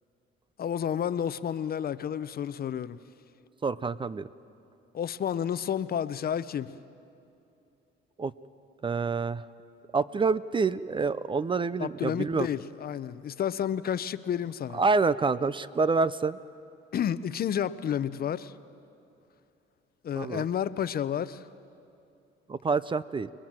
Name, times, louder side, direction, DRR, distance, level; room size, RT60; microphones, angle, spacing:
voice 1, 0.6-3.0 4.9-6.7 11.8-14.8 16.9-18.5 20.0-21.5, left 9 dB, 45° left, 0.7 m, -31 dB
voice 2, 3.6-4.3 8.2-8.3 8.8-9.4 9.9-12.5 14.7-16.4 20.2-20.5 22.5-23.3, right 4 dB, 25° right, 0.5 m, -27 dB
29.5 x 20.5 x 7.5 m
cardioid pair, 110°, 21 cm